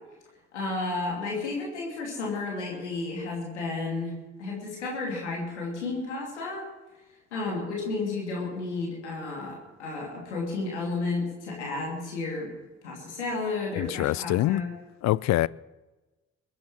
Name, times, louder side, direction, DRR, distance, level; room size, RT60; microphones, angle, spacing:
voice 1, 0.5-4.1 4.4-6.6 7.3-12.5 12.8-14.7, left 3 dB, 90° left, 2.9 m, -32 dB
voice 2, 13.8-14.6 15.0-15.5, left 16 dB, 55° left, 0.5 m, -24 dB
22.5 x 9.5 x 6.3 m
hypercardioid pair, 45°, 33 cm